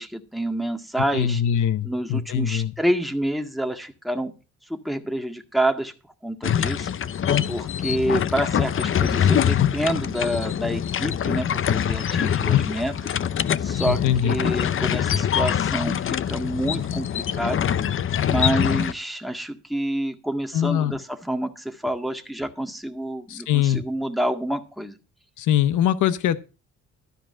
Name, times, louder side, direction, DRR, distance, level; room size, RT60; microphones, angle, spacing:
voice 1, 0.0-1.4 1.8-4.3 4.7-5.9 6.2-6.9 7.5-13.1 13.6-17.6 18.2-25.0, right 1 dB, ahead, 5 dB, 1.8 m, -28 dB
voice 2, 1.1-2.7 13.9-14.4 20.5-21.0 23.3-23.8 25.4-26.4, left 10 dB, 80° left, 14 dB, 0.9 m, -22 dB
sound 1, 6.4-18.9, left 9 dB, 45° left, 0.6 m, -24 dB
13.0 x 5.0 x 7.6 m, 0.33 s
cardioid pair, 90°, 30 cm